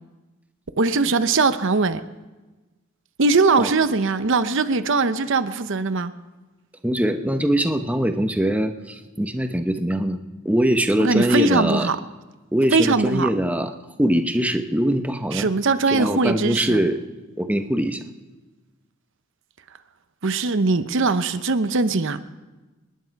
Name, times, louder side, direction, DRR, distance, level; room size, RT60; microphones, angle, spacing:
voice 1, 0.8-2.0 3.2-6.1 11.0-12.0 12.7-13.3 15.3-16.8 20.2-22.2, right 3 dB, 65° right, 11 dB, 0.8 m, -21 dB
voice 2, 6.8-11.9 12.5-13.7 14.0-15.5 15.9-17.0 17.4-18.0, right 1 dB, 5° right, 7 dB, 0.9 m, -22 dB
27.5 x 10.5 x 4.7 m, 1.2 s
head